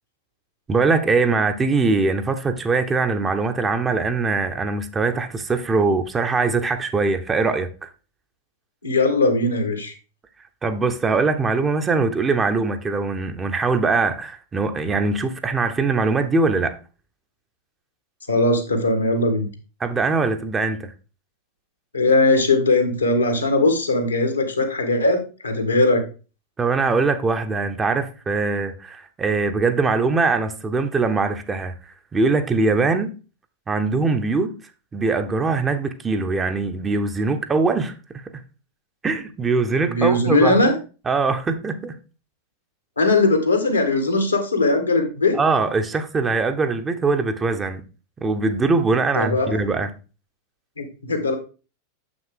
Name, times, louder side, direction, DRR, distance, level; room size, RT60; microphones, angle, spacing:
voice 1, 0.7-7.9 10.6-16.8 19.8-20.9 26.6-33.1 33.7-34.5 34.9-38.2 39.0-40.6 41.1-42.0 45.3-47.8 48.2-49.9, right 4 dB, 15° right, 0.8 m, -22 dB
voice 2, 8.8-9.9 18.3-19.5 21.9-26.0 39.9-40.7 43.0-45.4 49.1-49.6 50.8-51.3, left 2 dB, 80° left, 1.8 m, -19 dB
7.2 x 6.1 x 3.7 m
figure-of-eight pair, 90°, 0 cm